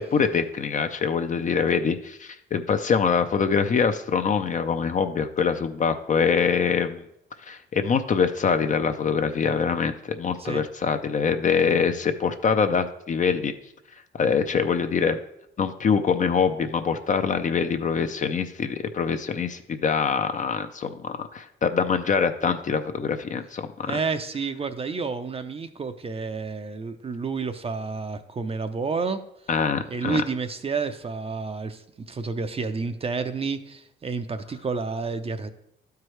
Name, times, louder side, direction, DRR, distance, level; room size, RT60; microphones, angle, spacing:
voice 1, 0.0-7.0 7.4-13.5 14.1-15.2 15.6-24.0 29.5-30.2, left 6 dB, 40° left, 8 dB, 0.5 m, -24 dB
voice 2, 23.9-29.2 29.9-35.5, right 4 dB, 30° right, 9 dB, 0.5 m, -30 dB
12.0 x 4.6 x 3.2 m, 0.78 s
cardioid pair, 90°, 20 cm